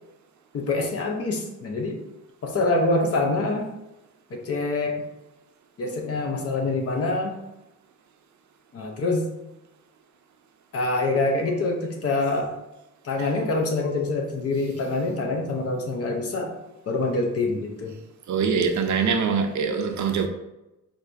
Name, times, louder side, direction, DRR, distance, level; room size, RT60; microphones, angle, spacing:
voice 1, 0.5-2.0 2.4-3.7 4.3-5.0 5.8-7.4 8.7-9.3 10.7-12.5 13.0-16.5 16.9-17.9, left 2 dB, 45° left, 0.7 m, -25 dB
voice 2, 18.3-20.3, right 5 dB, 60° right, 0.5 m, -23 dB
4.6 x 2.6 x 3.3 m
wide cardioid pair, 175°, 34 cm